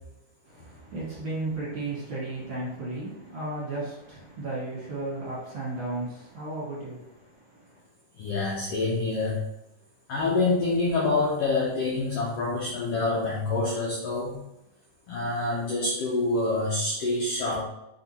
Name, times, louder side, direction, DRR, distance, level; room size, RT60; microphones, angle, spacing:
voice 1, 0.5-7.8, right 2 dB, 50° right, -7 dB, 1.8 m, -34 dB
voice 2, 8.1-9.4 10.1-14.4 15.1-17.6, left 3 dB, 80° left, -4 dB, 1.4 m, -26 dB
4.2 x 4.2 x 2.8 m, 0.88 s
omnidirectional pair, 3.6 m